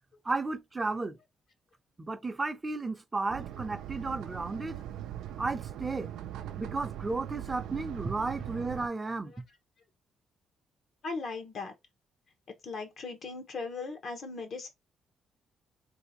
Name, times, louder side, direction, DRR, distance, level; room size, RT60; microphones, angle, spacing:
voice 1, 0.2-1.2 2.0-4.8 5.4-6.1 6.6-9.3, right 3 dB, 25° right, 0.6 m, -33 dB
sound 1, 3.3-8.9, right 11 dB, 90° right, 0.4 m, -40 dB
voice 2, 11.0-11.7 12.6-14.7, left 4 dB, 60° left, 0.9 m, -38 dB
3.3 x 2.7 x 2.8 m
cardioid pair, 90°, 0 cm